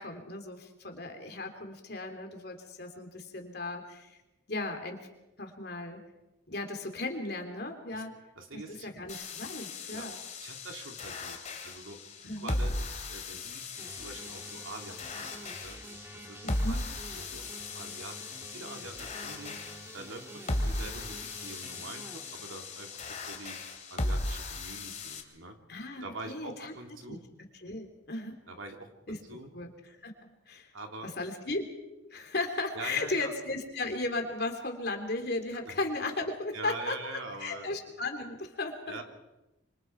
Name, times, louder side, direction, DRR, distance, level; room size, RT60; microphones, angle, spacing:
voice 1, 0.0-4.2 4.5-5.0 5.4-6.0 6.5-8.2 8.5-10.2 12.2-12.5 16.4-16.8 25.7-26.7 27.1-27.2 27.6-28.4 29.1-29.2 29.5-30.1 30.5-30.7 31.0-31.6 32.1-37.0 37.4-39.0, left 2 dB, 55° left, 4 dB, 3.2 m, -36 dB
voice 2, 8.4-8.9 9.9-10.0 10.4-11.4 11.6-12.0 12.4-15.8 16.1-16.4 16.7-17.4 17.7-19.6 19.9-23.6 23.9-25.6 26.0-27.2 28.5-29.5 30.7-31.1 32.7-33.3 35.6-35.7 36.5-37.7 38.9-39.0, right 2 dB, 90° right, 3 dB, 3.0 m, -44 dB
sound 1, 9.1-25.2, left 2 dB, 35° left, 2.6 m, -37 dB
sound 2, 13.8-23.4, right 1 dB, 15° right, 1.6 m, -48 dB
26.5 x 25.5 x 4.7 m, 1.0 s
head